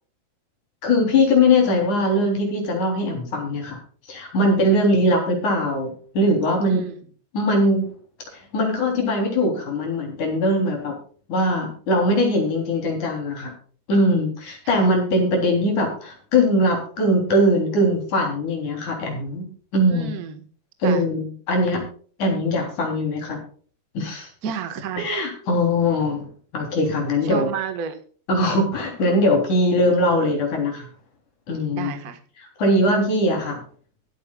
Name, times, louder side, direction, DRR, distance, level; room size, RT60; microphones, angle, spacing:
voice 1, 0.8-3.8 4.1-6.8 7.3-7.9 8.5-10.9 11.3-13.5 13.9-19.5 19.7-20.1 20.8-21.8 22.2-23.4 23.9-24.3 25.0-26.3 26.5-27.5 28.3-30.9 31.5-31.9 32.6-33.6, left 1 dB, 55° left, 2 dB, 4.8 m, -21 dB
voice 2, 6.7-7.0 14.7-14.9 19.9-20.5 20.8-21.0 24.4-25.1 27.2-28.0 31.7-32.2, right 7 dB, 80° right, 8 dB, 0.8 m, -31 dB
23.0 x 8.7 x 2.4 m, 0.44 s
omnidirectional pair, 4.4 m